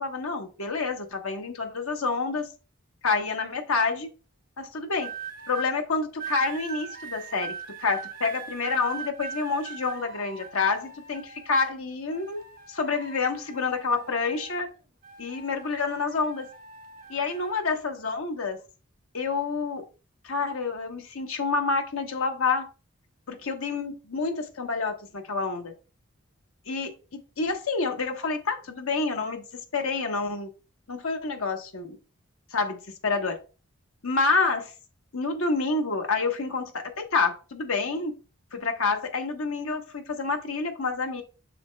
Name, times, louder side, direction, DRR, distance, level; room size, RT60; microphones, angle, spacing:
voice 1, 0.0-2.5 3.0-4.1 4.6-5.1 5.5-12.4 12.7-14.7 15.2-16.5 17.1-18.6 19.1-19.8 20.2-22.7 23.3-25.7 26.7-30.5 30.9-32.0 32.5-33.4 34.0-34.7 35.1-38.1 38.5-41.2, left 4 dB, 90° left, 4 dB, 1.0 m, -28 dB
sound 1, 5.0-5.7 6.2-11.7 12.1-14.7 15.0-17.6 18.3-18.6, right 7 dB, 45° right, 1.0 m, -41 dB
6.9 x 6.4 x 2.2 m, 0.34 s
head